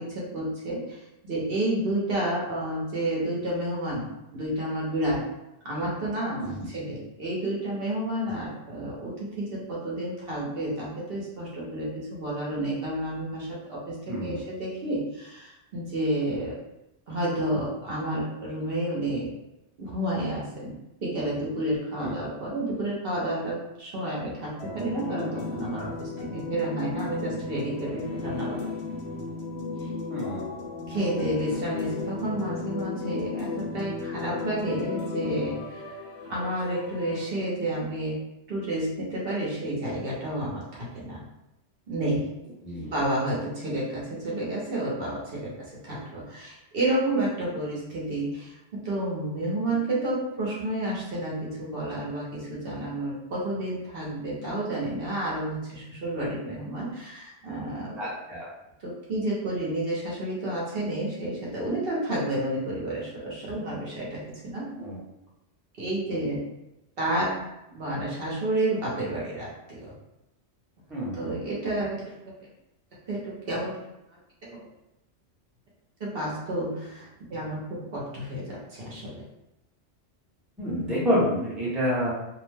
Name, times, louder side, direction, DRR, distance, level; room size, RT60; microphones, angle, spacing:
voice 1, 0.0-5.2 5.6-16.6 17.1-19.3 19.8-20.7 21.0-28.7 29.8-29.9 30.9-35.9 36.3-38.2 38.5-41.2 41.9-42.3 42.8-58.0 58.8-64.7 65.8-66.4 67.0-67.4 67.7-69.9 71.1-72.0 73.1-73.8 74.4-74.7 76.0-79.2, right 1 dB, 60° right, -5 dB, 0.9 m, -30 dB
voice 2, 14.1-14.4 22.0-22.1 30.1-30.4 42.6-42.9 58.0-58.5 64.8-65.0 70.9-71.2 80.6-82.1, equal, ahead, -7 dB, 0.7 m, -28 dB
sound 1, 24.6-37.2, left 3 dB, 70° left, 0.8 m, -35 dB
2.6 x 2.1 x 3.2 m, 0.90 s
omnidirectional pair, 1.2 m